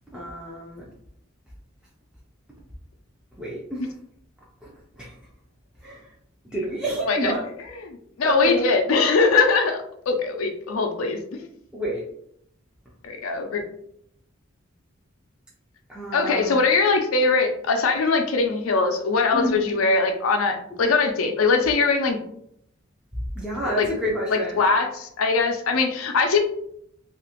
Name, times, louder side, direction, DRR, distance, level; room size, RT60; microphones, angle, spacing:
voice 1, 0.1-0.8 3.4-3.6 5.0-5.1 5.8-5.9 6.5-7.4 8.2-8.7 11.7-12.0 15.9-16.5 19.3-19.6 23.4-24.5, equal, 5° right, -6 dB, 0.4 m, -27 dB
voice 2, 7.0-11.4 13.0-13.6 16.1-22.2 23.8-23.9 24.3-26.4, left 4 dB, 90° left, 5 dB, 0.5 m, -22 dB
2.8 x 2.4 x 2.8 m, 0.71 s
head